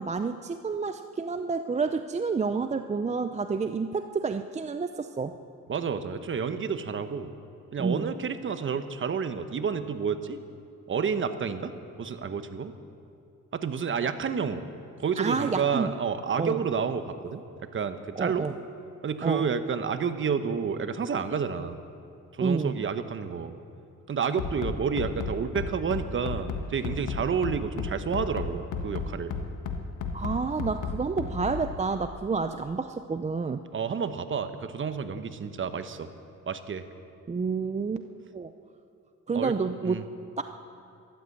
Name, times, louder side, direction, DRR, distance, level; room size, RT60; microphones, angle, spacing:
voice 1, 0.0-5.4 7.8-8.1 15.2-15.9 16.4-16.6 18.2-18.5 19.2-19.5 22.4-22.8 30.1-33.6 37.3-38.1 38.3-38.5 39.3-40.1 40.4-40.5, right 4 dB, 25° right, 9 dB, 0.5 m, -29 dB
voice 2, 5.7-7.3 7.7-10.4 10.9-11.7 12.0-12.7 13.5-14.6 15.0-17.4 17.7-18.4 19.0-21.8 22.3-23.5 24.1-29.3 33.7-36.1 36.5-36.9 39.3-39.5 39.8-40.0, right 6 dB, 40° right, 10 dB, 1.0 m, -30 dB
Bass drum, 24.4-31.8, left 5 dB, 85° left, 1.5 m, -32 dB
13.5 x 12.5 x 7.9 m, 2.6 s
cardioid pair, 90°, 30 cm